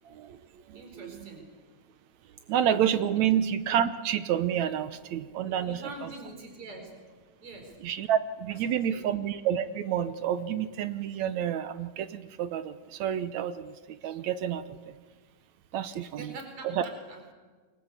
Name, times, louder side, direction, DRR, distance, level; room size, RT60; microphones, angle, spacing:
voice 1, 0.1-0.4 0.7-1.3 2.5-5.8 7.8-14.9 15.7-16.3 16.8-16.9, right 9 dB, 70° right, 12 dB, 2.1 m, -29 dB
voice 2, 0.7-1.5 3.1-3.3 5.5-6.9 7.4-7.8 8.7-9.1 16.2-17.3, right 2 dB, 45° right, 4 dB, 5.3 m, -44 dB
28.0 x 23.5 x 8.3 m, 1.4 s
omnidirectional pair, 3.6 m